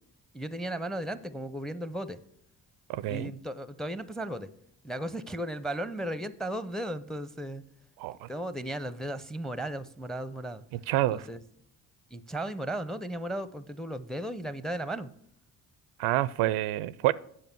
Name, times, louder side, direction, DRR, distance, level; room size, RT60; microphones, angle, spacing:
voice 1, 0.3-2.2 3.0-4.5 4.8-7.6 8.3-10.6 11.1-11.4 12.1-15.1, right 1 dB, ahead, 15 dB, 0.5 m, -35 dB
voice 2, 2.9-3.3 8.0-8.3 10.7-11.3 16.0-17.1, right 15 dB, 75° right, 19 dB, 0.5 m, -28 dB
8.4 x 5.1 x 7.1 m, 0.68 s
hypercardioid pair, 50°, 49 cm